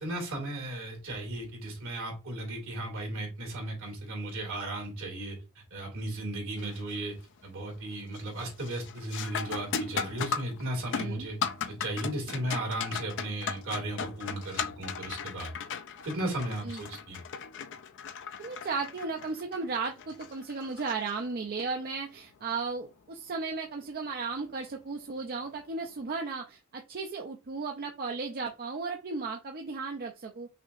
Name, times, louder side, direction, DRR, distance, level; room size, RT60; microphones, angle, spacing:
voice 1, 0.0-7.2 7.4-11.4 11.7-15.5 16.0-17.2, right 1 dB, 65° right, -1 dB, 2.4 m, -35 dB
sound 1, 6.6-7.0 7.4-7.8 8.1-21.7 24.2-24.3 25.1-25.3, left 6 dB, 60° left, 0.5 m, -37 dB
voice 2, 18.4-30.5, right 4 dB, 45° right, 2 dB, 0.5 m, -35 dB
5.8 x 2.8 x 2.5 m, 0.28 s
head